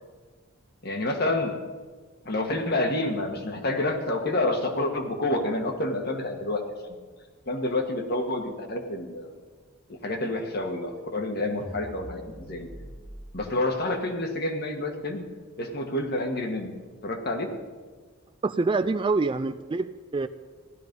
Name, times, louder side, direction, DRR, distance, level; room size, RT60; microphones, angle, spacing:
voice 1, 0.8-1.5 2.2-7.0 7.5-9.3 10.0-12.7 13.3-15.3 15.6-16.8 17.0-17.5, left 2 dB, 45° left, 4 dB, 1.6 m, -28 dB
sound 1, 11.6-13.4, equal, 5° left, 1.0 m, -42 dB
voice 2, 18.4-20.3, right 3 dB, 25° right, 12 dB, 0.3 m, -26 dB
16.0 x 12.5 x 5.4 m, 1.4 s
head